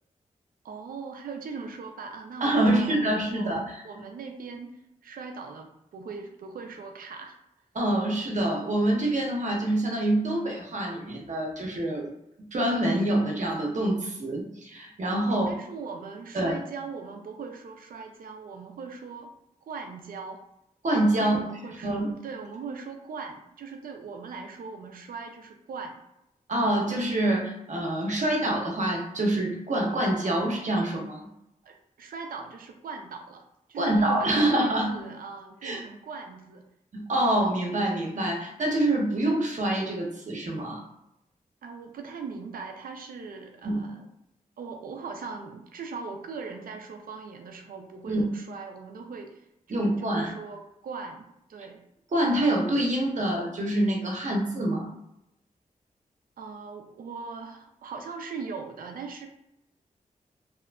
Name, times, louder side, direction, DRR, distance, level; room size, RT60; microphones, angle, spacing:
voice 1, 0.6-3.6 3.8-7.4 15.3-19.3 19.6-20.4 21.2-22.0 22.2-26.0 31.6-33.4 33.7-36.7 41.6-44.1 44.6-51.8 56.4-59.3, right 5 dB, 80° right, 4 dB, 0.4 m, -40 dB
voice 2, 2.4-3.7 7.7-12.1 12.5-15.5 16.3-16.6 20.8-21.4 21.8-22.1 26.5-31.2 33.8-35.0 35.6-35.8 36.9-40.8 43.6-43.8 48.1-48.2 49.7-50.3 52.1-54.9, right 1 dB, 60° right, -1 dB, 0.7 m, -26 dB
2.8 x 2.3 x 2.2 m, 0.82 s
cardioid pair, 60°, 14 cm